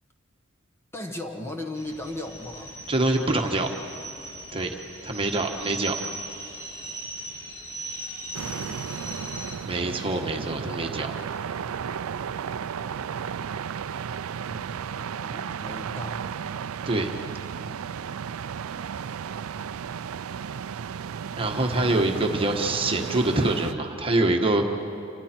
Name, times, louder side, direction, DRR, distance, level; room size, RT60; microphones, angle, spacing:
voice 1, 0.9-2.7 8.2-9.2 14.5-16.3, left 1 dB, 10° left, 3 dB, 1.3 m, -38 dB
sound 1, 1.7-9.6, right 1 dB, 80° left, 4.2 m, -38 dB
voice 2, 2.9-3.7 4.5-4.7 5.0-6.0 9.6-11.1 16.9-17.1 21.4-24.6, right 2 dB, 25° right, 3 dB, 1.4 m, -25 dB
sound 2, 8.3-23.7, right 7 dB, 85° right, 0.4 m, -34 dB
28.0 x 26.5 x 4.5 m, 2.6 s
head